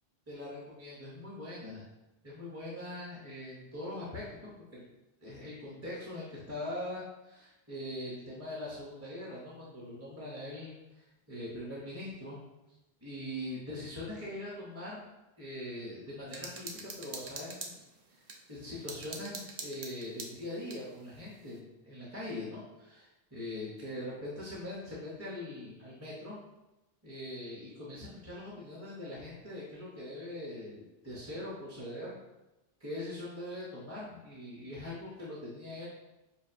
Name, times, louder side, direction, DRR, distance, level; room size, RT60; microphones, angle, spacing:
voice 1, 0.3-1.8 2.2-4.8 5.2-12.4 13.0-17.8 18.5-26.4 27.0-32.2 32.8-35.9, left 1 dB, 15° right, -6 dB, 0.6 m, -42 dB
sound 1, 16.3-18.4 18.9-20.8, right 3 dB, 55° right, 0.5 m, -43 dB
5.6 x 2.4 x 2.5 m, 1.0 s
omnidirectional pair, 1.0 m